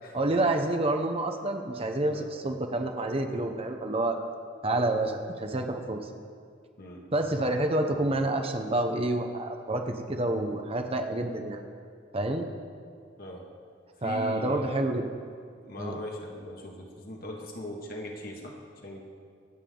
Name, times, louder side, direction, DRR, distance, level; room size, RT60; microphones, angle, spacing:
voice 1, 0.1-4.2 4.6-6.1 7.1-11.6 12.1-12.5 14.0-15.0 15.8-16.0, right 2 dB, 30° right, 4 dB, 0.9 m, -28 dB
voice 2, 6.8-7.1 13.2-13.5 14.0-14.8 15.6-18.6 18.8-19.0, equal, 50° left, 0 dB, 1.9 m, -40 dB
25.5 x 8.9 x 3.9 m, 2.2 s
head